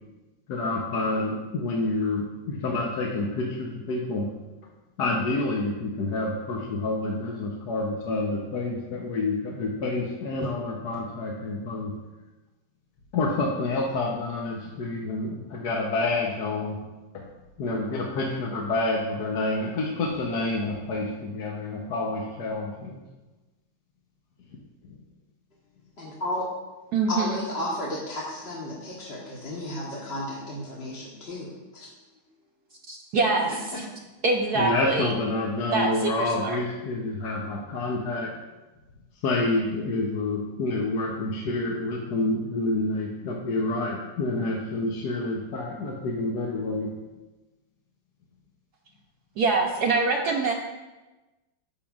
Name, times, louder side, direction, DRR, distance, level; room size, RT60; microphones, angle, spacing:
voice 1, 0.5-4.3 5.0-11.9 13.1-16.8 17.1-17.3 17.6-23.0 34.5-38.3 39.2-46.9, left 2 dB, 65° left, -1 dB, 1.3 m, -28 dB
voice 2, 26.0-26.5 27.1-31.9 33.5-33.8, left 1 dB, 35° left, -5 dB, 1.4 m, -33 dB
voice 3, 26.9-27.4 32.9-33.9 34.2-35.1 35.7-36.6 49.4-50.5, right 3 dB, 65° right, -1 dB, 1.1 m, -25 dB
11.5 x 7.4 x 2.4 m, 1.1 s
omnidirectional pair, 2.0 m